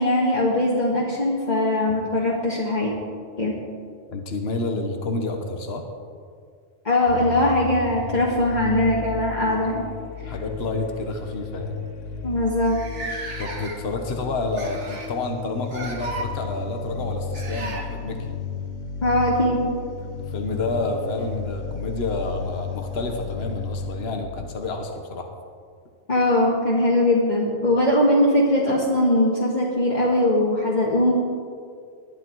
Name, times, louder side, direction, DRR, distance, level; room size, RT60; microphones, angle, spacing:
voice 1, 0.0-2.9 3.4-3.5 6.8-9.8 10.2-10.3 12.2-12.8 19.0-19.7 26.1-31.1, left 1 dB, 35° left, -5 dB, 2.0 m, -21 dB
voice 2, 4.1-5.8 10.2-11.8 13.4-18.3 20.2-25.3, left 3 dB, 55° left, 3 dB, 1.5 m, -29 dB
sound 1, 7.1-24.2, left 5 dB, 85° left, 1.4 m, -34 dB
sound 2, 8.7-9.2 10.2-10.4 10.8-10.9 11.7-11.8 11.9-12.0 12.6-14.0 14.5-15.2 15.7-16.3 17.3-17.9 20.0-20.1 21.1-21.2, right 2 dB, 70° right, 2.1 m, -35 dB
20.5 x 11.0 x 4.7 m, 2.1 s
omnidirectional pair, 1.2 m